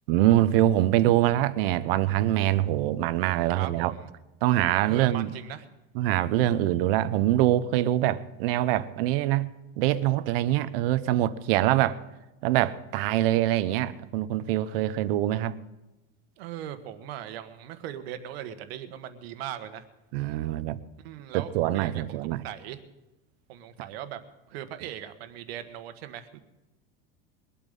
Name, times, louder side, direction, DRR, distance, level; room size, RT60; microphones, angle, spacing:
voice 1, 0.1-3.9 4.4-5.3 5.9-9.5 9.8-12.0 12.4-15.6 20.1-20.8 21.3-22.4, right 13 dB, 70° right, 0.9 m, -24 dB
voice 2, 3.5-4.1 4.8-5.7 11.7-11.9 16.4-19.8 21.0-22.2 22.4-22.8 23.5-24.2 24.5-26.4, right 11 dB, 85° right, 1.5 m, -39 dB
22.0 x 8.7 x 5.5 m
cardioid pair, 170°, 30 cm